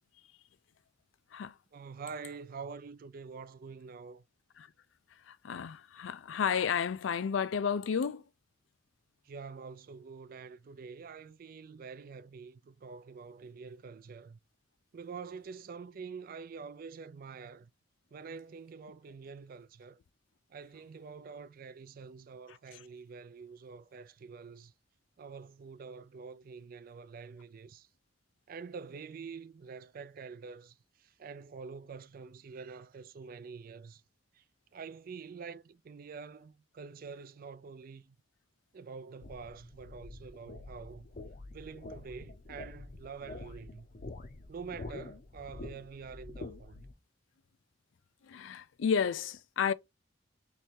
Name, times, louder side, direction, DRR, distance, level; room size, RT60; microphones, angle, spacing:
voice 1, 1.7-4.2 9.2-14.4 14.9-17.7 18.1-20.0 20.5-24.7 25.2-27.9 28.5-34.0 34.3-34.4 34.7-38.2 38.7-41.1 41.5-43.9 44.5-46.9, right 5 dB, 50° right, 0.4 m, -46 dB
voice 2, 5.3-8.2 48.2-49.7, left 7 dB, 90° left, 0.4 m, -32 dB
sound 1, 39.2-46.9, left 2 dB, 45° left, 0.6 m, -47 dB
3.3 x 3.2 x 4.2 m
head